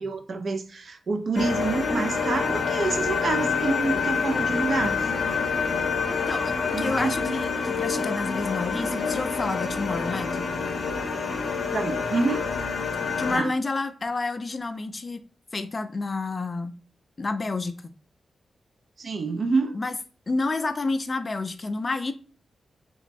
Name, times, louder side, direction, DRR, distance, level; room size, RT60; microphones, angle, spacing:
voice 1, 0.0-5.1 6.7-7.1 11.7-12.5 13.3-13.5 19.0-19.7, right 3 dB, 55° right, 0.3 m, -27 dB
sound 1, 1.3-13.4, left 5 dB, 65° left, 0.7 m, -27 dB
voice 2, 6.1-10.5 13.2-15.2 15.5-16.8 17.2-17.9 19.7-20.0 20.3-22.1, left 3 dB, 35° left, 0.3 m, -29 dB
3.4 x 3.0 x 2.5 m
cardioid pair, 85°, 0 cm